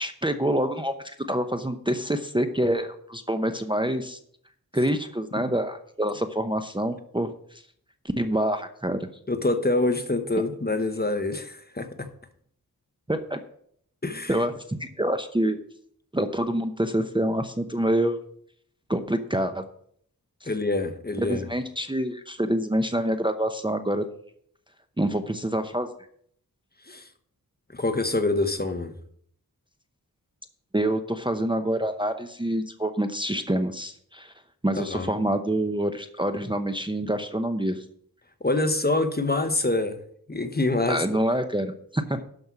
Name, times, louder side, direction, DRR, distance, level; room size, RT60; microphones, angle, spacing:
voice 1, 0.0-4.2 4.7-7.6 8.2-9.1 13.1-13.4 14.3-15.6 16.1-18.2 18.9-19.7 20.4-20.5 21.2-24.1 25.0-25.9 30.7-34.3 34.6-37.8 40.9-42.2, right 1 dB, 15° right, 7 dB, 0.8 m, -26 dB
voice 2, 9.3-12.1 14.0-14.3 20.4-21.5 26.8-27.1 27.7-28.9 34.8-35.2 38.4-40.0 40.3-41.2, left 2 dB, 25° left, 8 dB, 1.1 m, -26 dB
12.0 x 5.5 x 6.0 m, 0.63 s
wide cardioid pair, 70°, 37 cm